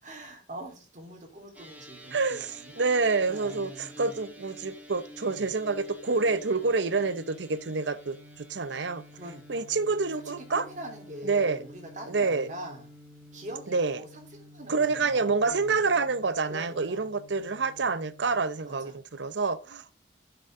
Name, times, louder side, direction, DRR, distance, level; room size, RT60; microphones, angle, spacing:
voice 1, 0.0-2.7 3.3-4.2 5.3-5.5 9.1-9.6 10.4-12.9 13.3-14.2 14.5-15.8 16.5-17.0 18.6-19.0, right 1 dB, 45° right, 3.4 m, -43 dB
sound 1, 1.5-19.0, left 1 dB, 10° right, 2.1 m, -50 dB
voice 2, 2.1-9.0 9.5-10.7 11.2-11.6 12.1-12.5 13.7-14.0 14.7-19.9, right 4 dB, 75° right, 0.8 m, -27 dB
10.0 x 7.0 x 3.8 m
head